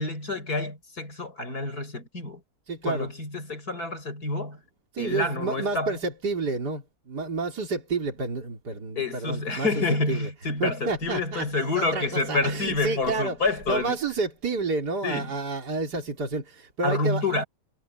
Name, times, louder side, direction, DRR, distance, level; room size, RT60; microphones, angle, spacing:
voice 1, 0.0-2.4 2.8-4.6 5.0-6.0 9.0-14.0 15.0-15.3 16.8-17.4, left 3 dB, 60° left, 6.2 m, -28 dB
voice 2, 2.7-3.1 4.9-10.3 10.6-11.5 11.8-12.0 12.3-13.4 13.7-17.2, right 3 dB, 65° right, 4.1 m, -30 dB
omnidirectional pair, 1.9 m